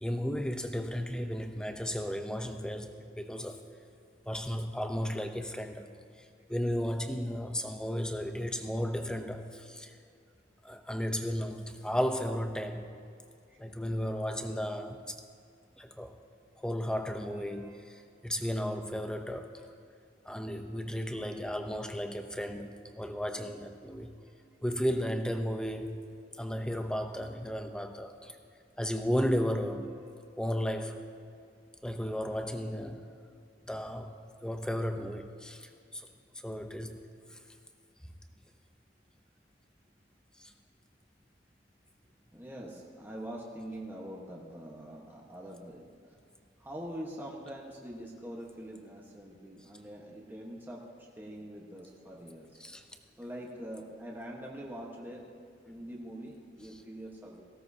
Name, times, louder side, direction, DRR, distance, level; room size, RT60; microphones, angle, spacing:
voice 1, 0.0-3.6 4.3-5.9 6.2-9.9 10.6-12.9 13.6-15.1 15.8-16.2 16.6-19.5 20.3-24.1 24.6-26.0 26.4-28.4 28.8-29.9 30.4-31.0 31.8-33.0 33.7-34.1 34.4-36.1 36.4-37.0 40.4-40.5 52.6-52.8, equal, 5° left, 6 dB, 0.7 m, -34 dB
voice 2, 17.4-17.8 25.7-25.8 30.0-30.3 37.3-37.4 42.3-45.9 46.6-52.6 53.2-55.3 55.6-57.4, equal, 10° right, -3 dB, 1.2 m, -44 dB
18.0 x 16.0 x 2.8 m, 2.4 s
head